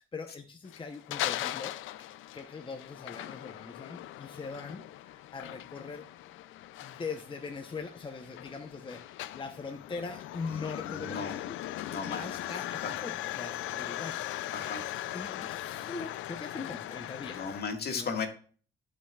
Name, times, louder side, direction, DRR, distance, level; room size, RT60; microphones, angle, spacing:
voice 1, 0.0-1.8 2.3-6.1 6.8-11.6 12.1-14.2 15.1-17.5 17.9-18.1, left 4 dB, 25° left, 5 dB, 0.9 m, -41 dB
sound 1, 0.7-17.6, left 14 dB, 85° left, 0.5 m, -39 dB
voice 2, 10.5-11.4 11.9-12.4 12.8-12.9 14.5-14.8 17.3-18.3, left 5 dB, 55° left, 4 dB, 1.9 m, -36 dB
15.0 x 5.5 x 2.4 m, 0.42 s
cardioid pair, 90°, 20 cm